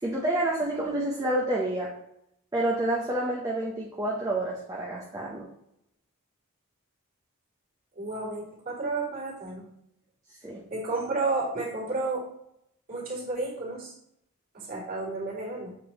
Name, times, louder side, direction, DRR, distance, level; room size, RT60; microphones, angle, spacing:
voice 1, 0.0-1.9 2.5-5.5 10.4-10.6, right 1 dB, 15° right, -3 dB, 0.8 m, -28 dB
voice 2, 7.9-9.6 10.7-12.3 12.9-13.9 14.5-15.7, right 3 dB, 40° right, -7 dB, 2.9 m, -31 dB
7.6 x 6.1 x 3.0 m, 0.78 s
head